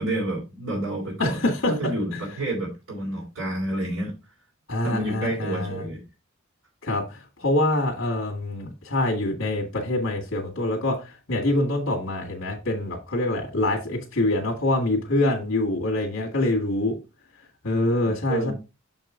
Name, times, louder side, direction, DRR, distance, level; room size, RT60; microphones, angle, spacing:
voice 1, 0.0-1.4 1.8-4.1 4.8-6.0 18.1-18.5, right 1 dB, 80° right, 3.5 m, -29 dB
voice 2, 1.2-1.7 2.1-2.2 4.7-5.8 6.8-17.0 17.6-18.5, left 1 dB, 65° left, 1.9 m, -25 dB
6.6 x 5.4 x 3.8 m
head